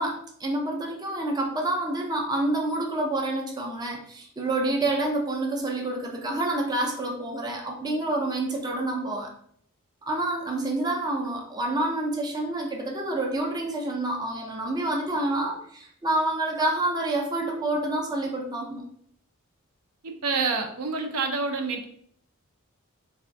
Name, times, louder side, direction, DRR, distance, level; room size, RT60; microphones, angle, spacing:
voice 1, 0.0-9.3 10.0-18.8, right 2 dB, 20° right, 0 dB, 0.4 m, -28 dB
voice 2, 20.0-21.8, right 4 dB, 75° right, 4 dB, 0.5 m, -27 dB
3.3 x 2.2 x 2.6 m, 0.65 s
head